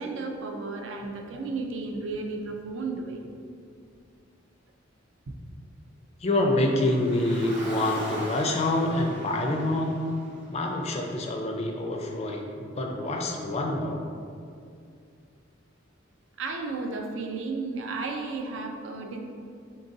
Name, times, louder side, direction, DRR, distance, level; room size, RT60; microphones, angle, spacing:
voice 1, 0.0-3.2 16.4-19.2, right 3 dB, 70° right, 3 dB, 0.4 m, -33 dB
voice 2, 6.2-10.0 10.5-14.0, left 1 dB, 35° left, 2 dB, 0.4 m, -26 dB
Car, 6.7-11.1, equal, 35° right, 1.0 m, -39 dB
3.8 x 3.7 x 2.6 m, 2.3 s
head